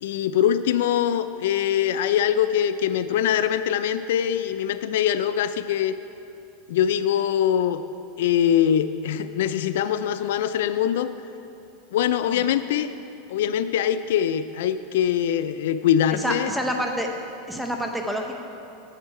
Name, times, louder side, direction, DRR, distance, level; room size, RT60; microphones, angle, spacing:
voice 1, 0.0-5.9 6.7-7.8 8.2-11.1 11.9-12.9 13.3-16.5, left 9 dB, 75° left, 12 dB, 0.3 m, -23 dB
voice 2, 16.1-17.1 17.5-18.4, equal, 5° right, 2 dB, 0.9 m, -28 dB
9.2 x 7.8 x 4.8 m, 2.7 s
supercardioid pair, 135°, 0 cm